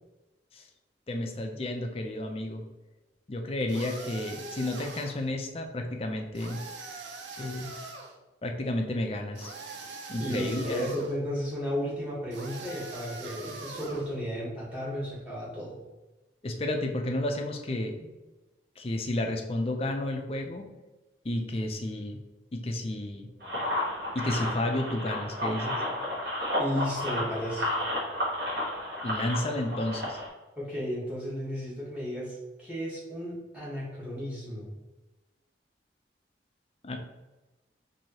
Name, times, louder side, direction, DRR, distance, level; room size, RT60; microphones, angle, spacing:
voice 1, 1.1-2.6 3.3-6.6 7.4-7.7 8.4-9.5 10.1-10.9 16.4-18.1 18.8-20.7 21.2-22.2 22.5-23.3 24.1-25.8 29.0-30.2 36.8-37.0, left 1 dB, 30° left, 3 dB, 0.4 m, -31 dB
sound 1, 3.7-5.3 6.3-8.1 9.4-11.2 12.3-14.1, right 3 dB, 80° right, 0.5 m, -42 dB
voice 2, 10.2-15.8 26.6-27.8 30.6-34.7, equal, 10° right, -7 dB, 1.2 m, -34 dB
sound 2, 23.4-30.3, left 1 dB, 55° right, 1.2 m, -32 dB
4.6 x 2.7 x 2.8 m, 1.1 s
head